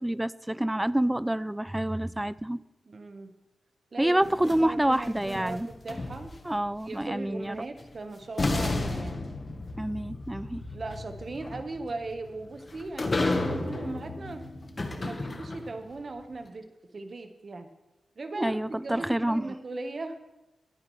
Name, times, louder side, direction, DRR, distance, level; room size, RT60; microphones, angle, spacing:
voice 1, 0.0-2.6 4.0-5.7 6.5-7.5 9.8-10.6 18.4-19.4, right 1 dB, 10° right, 18 dB, 0.3 m, -27 dB
voice 2, 2.8-3.3 3.9-6.3 6.9-9.3 10.7-14.4 14.8-17.7 18.2-20.2, right 3 dB, 40° right, 6 dB, 1.2 m, -38 dB
sound 1, 4.2-6.6 7.8-7.9 8.4-15.9, left 2 dB, 35° left, 1.3 m, -33 dB
20.5 x 9.6 x 3.2 m, 0.98 s
wide cardioid pair, 120°, 0 cm